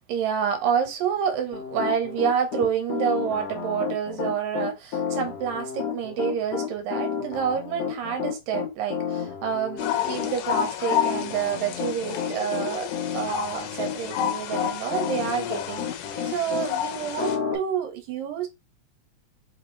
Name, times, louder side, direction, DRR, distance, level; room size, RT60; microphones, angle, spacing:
voice 1, 0.1-18.5, right 8 dB, 75° right, 2.4 m, -28 dB
Piano, 1.5-16.7 17.2-17.6, left 7 dB, 65° left, 1.7 m, -31 dB
sound 1, 9.8-17.4, left 11 dB, 85° left, 2.5 m, -31 dB
5.5 x 2.9 x 3.2 m
omnidirectional pair, 4.3 m